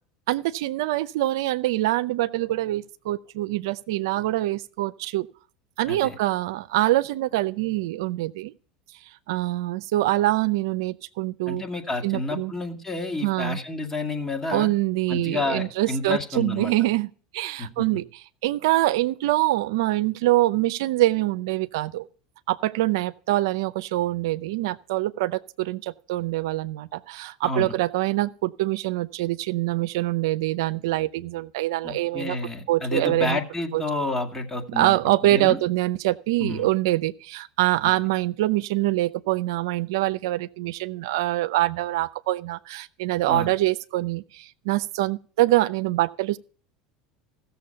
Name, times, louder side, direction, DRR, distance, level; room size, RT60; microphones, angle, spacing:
voice 1, 0.3-5.3 5.8-8.5 9.3-11.6 12.0-12.5 13.2-13.6 14.5-17.1 17.3-22.1 22.5-32.4 32.7-33.4 33.7-33.8 34.7-46.4, right 16 dB, 80° right, 0.5 m, -24 dB
voice 2, 5.9-6.2 11.5-14.7 15.1-16.7 17.6-18.0 27.4-27.7 31.8-35.0 35.2-35.6 36.4-36.7 43.3-43.5, left 2 dB, 20° left, 2.0 m, -30 dB
15.0 x 6.9 x 5.7 m
supercardioid pair, 100°, 2 cm